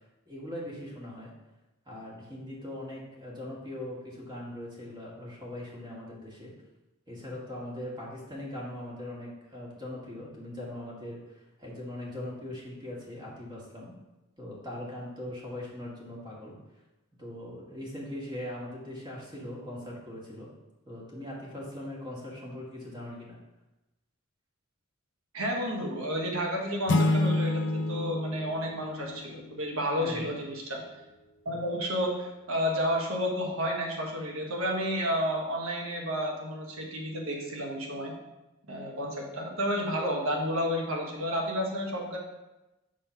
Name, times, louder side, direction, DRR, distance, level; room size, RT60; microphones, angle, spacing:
voice 1, 0.3-1.3 1.8-6.5 7.1-13.9 14.4-16.6 17.2-20.5 20.8-23.4 29.9-30.4, left 1 dB, 20° right, -4 dB, 1.6 m, -40 dB
voice 2, 25.3-30.8 31.4-38.1 38.7-42.2, equal, 85° right, 0 dB, 1.3 m, -31 dB
sound 1, 26.9-29.7, left 2 dB, 60° left, 0.4 m, -28 dB
5.4 x 3.8 x 5.6 m, 1.0 s
head